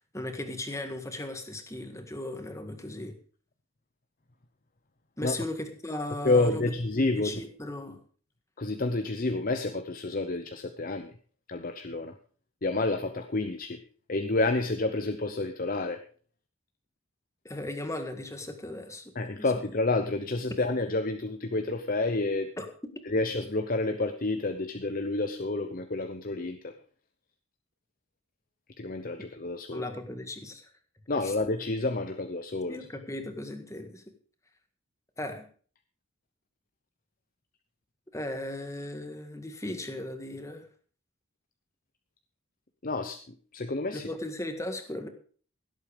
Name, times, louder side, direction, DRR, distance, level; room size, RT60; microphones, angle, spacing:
voice 1, 0.1-3.2 5.2-8.0 17.5-19.1 22.6-22.7 29.7-30.7 31.2-31.3 32.7-34.0 35.2-35.5 38.1-40.7 43.9-45.1, left 1 dB, 15° left, 6 dB, 1.8 m, -37 dB
voice 2, 6.2-7.4 8.6-11.1 11.5-12.1 12.6-13.8 14.1-16.0 19.1-22.5 23.0-26.7 28.8-29.9 31.1-32.8 42.8-44.1, left 2 dB, 45° left, 7 dB, 0.8 m, -29 dB
16.5 x 8.2 x 5.2 m, 0.44 s
head